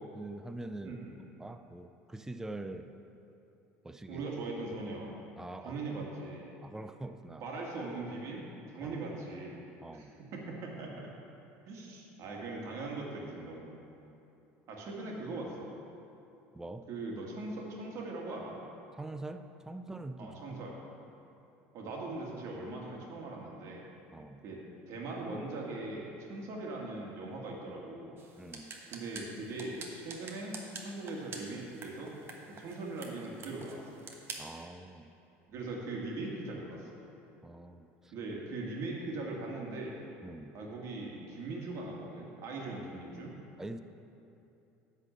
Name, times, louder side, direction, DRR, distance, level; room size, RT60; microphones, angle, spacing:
voice 1, 0.1-1.0 1.4-2.9 3.8-4.2 5.4-5.8 6.6-7.5 8.8-9.0 9.8-10.1 16.5-16.9 18.9-20.6 24.1-24.4 28.4-28.7 34.4-35.1 37.4-38.1 40.2-40.5 43.6-43.8, right 2 dB, 10° right, 8 dB, 0.5 m, -44 dB
voice 2, 0.8-1.1 4.1-5.1 5.6-6.5 7.4-8.4 8.7-9.6 9.9-11.1 11.7-13.8 14.7-15.7 16.9-18.6 20.2-20.7 21.7-23.9 24.4-28.1 28.9-30.5 30.8-32.1 32.5-34.0 35.5-37.0 38.1-40.0 40.5-43.4, right 2 dB, 55° right, -2 dB, 2.1 m, -40 dB
sound 1, 28.2-34.6, right 4 dB, 40° right, 1.3 m, -48 dB
10.5 x 4.2 x 7.5 m, 2.9 s
supercardioid pair, 100°, 6 cm